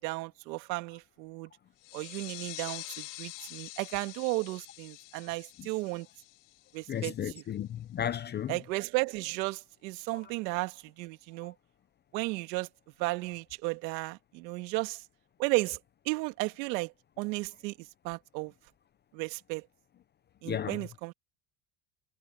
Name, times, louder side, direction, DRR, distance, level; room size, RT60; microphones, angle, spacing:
voice 1, 0.0-1.5 1.9-6.1 6.7-7.4 8.5-11.5 12.1-12.7 13.0-15.0 15.4-15.8 16.1-16.9 17.2-17.7 18.0-18.5 19.1-19.6 20.4-21.1, right 23 dB, 85° right, 2.0 m, -34 dB
sound 1, 1.8-7.1, left 24 dB, 70° left, 2.4 m, -46 dB
voice 2, 6.9-8.5 20.5-20.8, left 10 dB, 25° left, 0.4 m, -34 dB
supercardioid pair, 125°, 50 cm